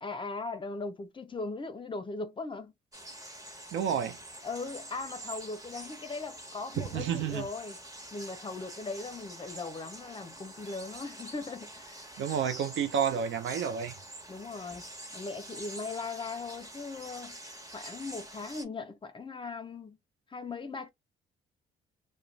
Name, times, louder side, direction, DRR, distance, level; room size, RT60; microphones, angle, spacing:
voice 1, 0.0-2.7 4.4-7.8 8.1-12.1 14.3-14.8 15.1-17.4 17.7-20.0 20.3-20.9, left 3 dB, 25° left, 0.5 m, -39 dB
sound 1, 2.9-18.6, right 1 dB, 15° right, 1.1 m, -46 dB
voice 2, 3.7-4.2 6.8-7.4 12.2-14.0, right 8 dB, 70° right, 0.5 m, -30 dB
2.3 x 2.1 x 3.1 m
cardioid pair, 90°, 20 cm